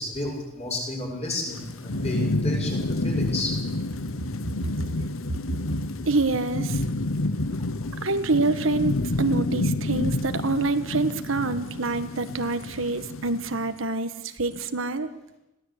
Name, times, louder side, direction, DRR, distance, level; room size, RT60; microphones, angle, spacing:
voice 1, 0.0-3.5 7.5-7.7, left 2 dB, 30° left, -1 dB, 6.9 m, -32 dB
Thunderstorm / Rain, 1.4-13.7, left 2 dB, 85° left, 1.1 m, -29 dB
voice 2, 6.1-6.8 8.0-15.1, right 3 dB, 75° right, 9 dB, 1.4 m, -26 dB
21.5 x 16.5 x 8.4 m, 0.93 s
head